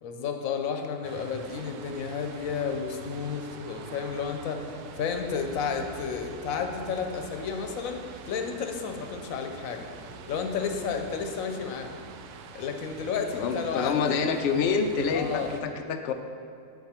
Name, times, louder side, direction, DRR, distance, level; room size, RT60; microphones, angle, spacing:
voice 1, 0.0-9.9 10.3-12.0 12.5-14.2 15.1-15.5, left 6 dB, 65° left, 5 dB, 1.0 m, -32 dB
sound 1, 1.0-15.6, right 5 dB, 75° right, 1.1 m, -45 dB
voice 2, 13.3-16.1, left 5 dB, 85° left, 6 dB, 0.6 m, -27 dB
7.9 x 6.0 x 4.3 m, 2.5 s
omnidirectional pair, 1.7 m